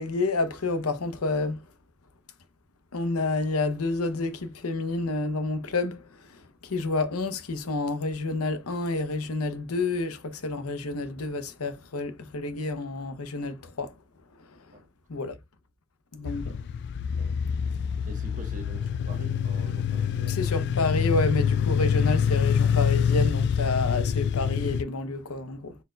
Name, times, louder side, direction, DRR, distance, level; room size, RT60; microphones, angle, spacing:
voice 1, 0.0-1.6 2.9-13.9 14.4-14.6 15.1-15.4 16.1-16.6 20.3-25.8, left 3 dB, 80° left, 0.8 m, -29 dB
sound 1, 16.3-24.8, left 7 dB, 55° left, 0.3 m, -26 dB
voice 2, 18.1-20.5, right 1 dB, 40° right, 1.1 m, -45 dB
4.2 x 3.8 x 2.2 m
head